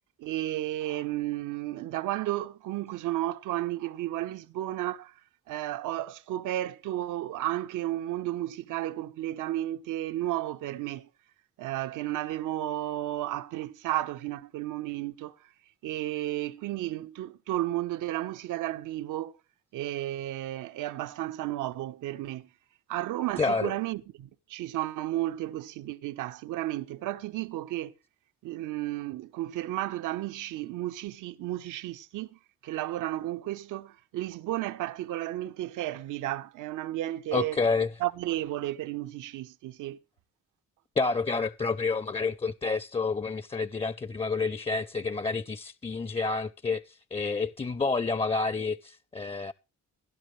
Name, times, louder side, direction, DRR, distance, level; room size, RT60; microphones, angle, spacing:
voice 1, 0.2-5.1 5.5-11.1 11.6-15.3 15.8-19.3 19.7-22.5 22.9-27.9 28.4-32.3 32.6-37.6 38.0-40.0, right 14 dB, 85° right, 1.1 m, -33 dB
voice 2, 23.4-23.7 37.3-37.9 41.0-49.5, left 4 dB, 20° left, 0.6 m, -29 dB
16.0 x 11.5 x 3.3 m
cardioid pair, 90°, 30 cm